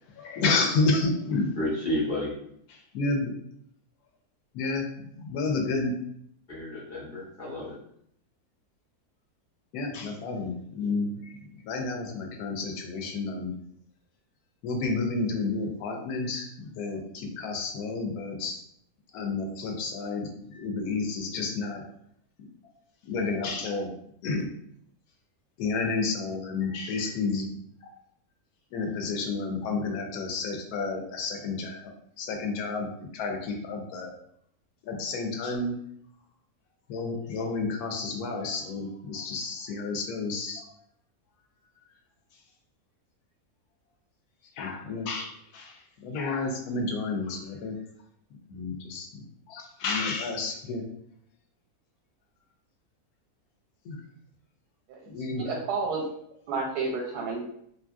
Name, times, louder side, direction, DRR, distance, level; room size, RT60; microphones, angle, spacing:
voice 1, 0.2-1.5 2.7-3.3 4.5-5.9 9.7-13.5 14.6-18.6 19.1-21.8 23.0-23.9 24.2-24.5 25.6-27.5 27.8-27.9 28.7-31.8 32.2-34.1 34.8-35.8 36.9-40.6 44.6-47.7 48.5-50.8 53.8-54.0 55.1-55.5, left 3 dB, 80° left, 2 dB, 1.1 m, -31 dB
voice 2, 1.6-2.3 6.5-7.7, left 1 dB, 40° left, -6 dB, 0.8 m, -31 dB
voice 3, 55.4-56.0 56.5-57.4, right 4 dB, 85° right, 0 dB, 1.1 m, -30 dB
2.7 x 2.6 x 2.3 m, 0.69 s
omnidirectional pair, 1.6 m